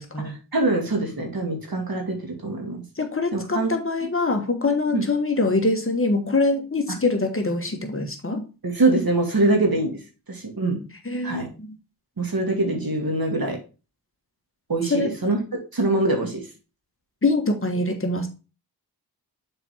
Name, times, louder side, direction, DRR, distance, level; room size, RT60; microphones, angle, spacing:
voice 1, 0.0-0.4 3.0-8.5 11.0-11.7 14.9-15.1 17.2-18.3, left 3 dB, 35° left, 4 dB, 1.4 m, -24 dB
voice 2, 0.5-2.8 3.3-3.7 4.9-5.0 8.6-10.0 10.3-10.8 11.2-11.5 12.2-13.6 14.7-15.4 15.7-16.4, right 2 dB, 60° right, 3 dB, 2.2 m, -23 dB
7.0 x 4.3 x 4.3 m, 0.31 s
wide cardioid pair, 65°, 39 cm